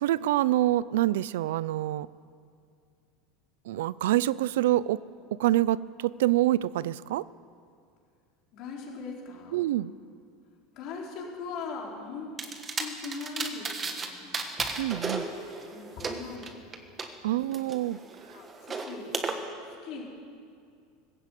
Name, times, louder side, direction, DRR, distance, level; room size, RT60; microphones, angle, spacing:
voice 1, 0.0-2.1 3.7-5.0 5.4-7.2 9.5-9.9 14.8-15.3 17.2-18.0, right 14 dB, 90° right, 19 dB, 0.5 m, -26 dB
voice 2, 8.5-9.6 10.7-12.3 12.7-14.5 15.7-16.6 17.8-17.9 18.3-19.1 19.6-20.1, left 4 dB, 40° left, -2 dB, 4.3 m, -40 dB
sound 1, 12.4-14.1 14.3-17.1 17.5-19.3, right 4 dB, 15° right, 1.4 m, -34 dB
20.0 x 16.0 x 8.4 m, 2.4 s
supercardioid pair, 175°, 0 cm